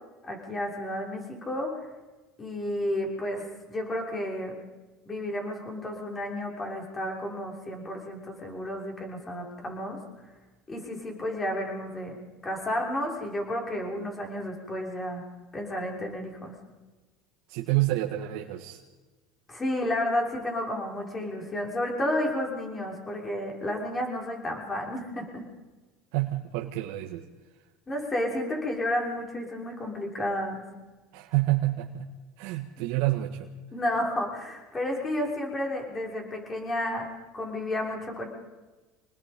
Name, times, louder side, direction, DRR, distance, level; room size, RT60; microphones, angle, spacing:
voice 1, 0.2-1.7 2.4-4.6 5.1-10.0 10.7-12.2 12.4-15.2 15.5-16.6 19.5-25.4 27.9-30.7 33.7-37.1 37.3-38.3, left 1 dB, 20° left, 0 dB, 6.2 m, -31 dB
voice 2, 17.5-18.8 26.1-27.2 31.1-32.1 32.4-33.5, right 16 dB, 75° right, 2 dB, 1.8 m, -28 dB
27.5 x 20.0 x 5.4 m, 1.2 s
supercardioid pair, 130°, 0 cm